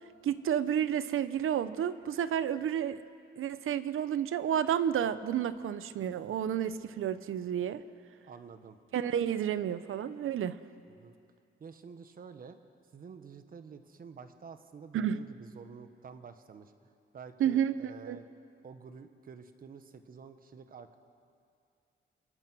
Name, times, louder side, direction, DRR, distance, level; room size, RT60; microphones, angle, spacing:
voice 1, 0.2-3.0 3.4-7.8 8.9-10.6 14.9-15.2 17.4-17.7 18.1-18.2, right 9 dB, 90° right, 13 dB, 0.8 m, -30 dB
voice 2, 8.2-8.8 11.0-11.1 11.6-12.6 12.9-16.7 17.1-18.2 18.6-21.0, right 6 dB, 45° right, 9 dB, 1.2 m, -49 dB
28.5 x 22.5 x 6.2 m, 2.4 s
wide cardioid pair, 180°, 21 cm